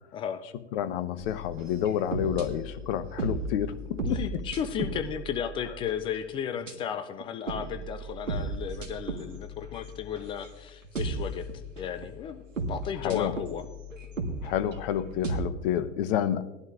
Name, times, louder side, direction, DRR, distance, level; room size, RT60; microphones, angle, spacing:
voice 1, 0.1-0.4 4.0-11.4 11.8-12.4 12.7-13.6, left 8 dB, 15° left, 9 dB, 0.3 m, -34 dB
voice 2, 0.7-4.2 13.0-13.3 14.4-16.4, left 10 dB, 50° left, 11 dB, 1.0 m, -29 dB
sound 1, 1.2-6.3 6.6-6.7 7.2-10.6 10.8-15.4, right 2 dB, 85° right, 1.7 m, -36 dB
19.0 x 11.5 x 2.5 m, 1.0 s
hypercardioid pair, 105°, 37 cm